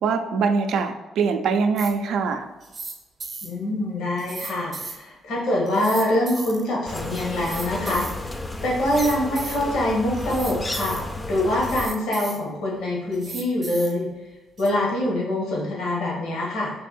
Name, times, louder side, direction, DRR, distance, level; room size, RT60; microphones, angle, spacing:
voice 1, 0.0-2.5, right 5 dB, 75° right, 6 dB, 0.4 m, -23 dB
sound 1, 1.8-1.9 2.6-2.9 3.2-3.5 4.2-5.0 5.7-6.6 7.4-8.2 8.8-9.6 10.1-11.0 11.6-12.4 13.1-13.9 14.6-14.7, right 4 dB, 45° right, 0.7 m, -36 dB
voice 2, 3.4-8.1 8.6-11.0 11.3-14.1 14.6-16.7, left 1 dB, 85° left, -3 dB, 1.1 m, -24 dB
sound 2, 6.9-11.9, left 2 dB, 20° left, 0.4 m, -33 dB
3.3 x 2.7 x 4.2 m, 1.1 s
cardioid pair, 90°, 0 cm